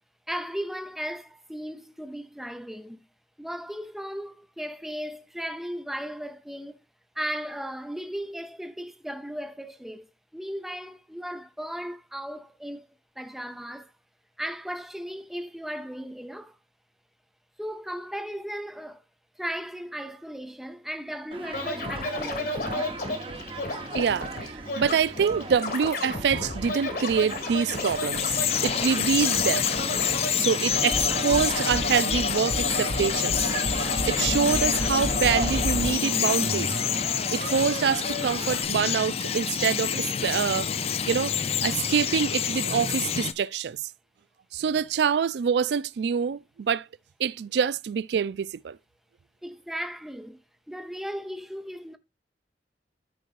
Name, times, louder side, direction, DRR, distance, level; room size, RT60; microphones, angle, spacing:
voice 1, 0.3-3.0 3.4-6.8 7.1-10.1 10.3-12.9 13.2-13.9 14.4-16.6 17.6-19.0 19.4-23.3 49.4-50.4 50.7-52.0, equal, ahead, 0.7 m, -36 dB
Human group actions, 21.3-38.6, right 3 dB, 30° right, 1.0 m, -39 dB
Scratching (performance technique), 21.5-30.3 30.7-35.9 36.2-38.6, left 1 dB, 55° left, 1.9 m, -32 dB
voice 2, 23.9-24.3 24.8-28.4 28.6-29.7 30.4-33.4 34.1-36.7 37.3-40.7 41.1-41.3 41.6-43.8 44.5-46.8 47.2-48.8, right 6 dB, 70° right, 0.3 m, -25 dB
Bird vocalization bird call bird song, 27.2-43.3, left 8 dB, 35° left, 0.5 m, -28 dB
13.5 x 4.6 x 2.5 m
head